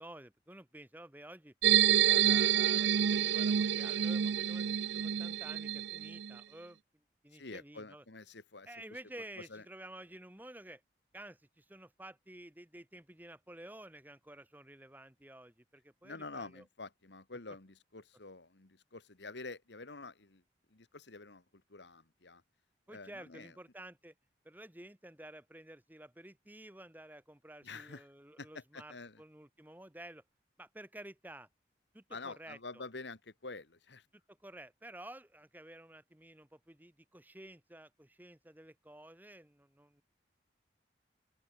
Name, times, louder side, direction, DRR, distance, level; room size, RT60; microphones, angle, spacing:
voice 1, 0.0-1.5 2.0-6.8 7.2-8.0 8.7-10.8 11.1-16.6 22.9-24.1 24.4-30.2 30.6-31.5 31.9-32.8 34.3-40.0, right 1 dB, 10° right, 1.3 m, -52 dB
sound 1, 1.6-6.3, right 10 dB, 80° right, 0.5 m, -28 dB
voice 2, 7.3-8.7 9.4-9.6 16.0-20.4 20.7-21.4 21.7-22.4 22.9-23.5 27.6-28.1 28.4-29.2 32.1-34.0, left 3 dB, 80° left, 1.7 m, -48 dB
open air
head